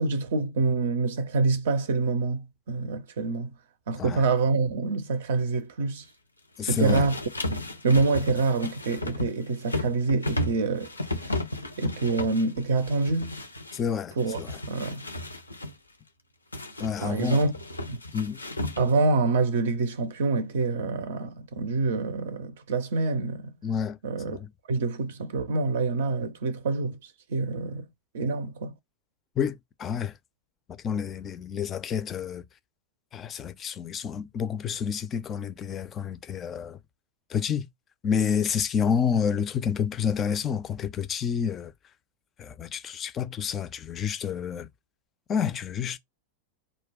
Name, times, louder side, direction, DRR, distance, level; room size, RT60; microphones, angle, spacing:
voice 1, 0.0-3.5 3.9-6.1 6.6-7.2 7.8-11.4 11.8-13.4 14.2-14.4 14.7-15.0 17.0-17.5 17.9-18.0 18.8-23.5 24.0-24.4 24.7-27.9 28.1-28.7, right 3 dB, 60° right, 0.5 m, -26 dB
sound 1, 6.6-13.8 14.2-15.7 16.5-19.1, left 1 dB, 80° left, 0.5 m, -33 dB
voice 2, 6.6-7.0 13.7-14.5 16.8-17.4 18.1-18.4 23.6-24.0 24.3-24.5 29.4-30.1 30.8-32.4 33.1-36.8 37.3-37.7 38.0-41.7 42.4-44.7 45.3-46.0, left 7 dB, 25° left, 0.4 m, -29 dB
2.4 x 2.2 x 3.5 m
figure-of-eight pair, 90°, 0 cm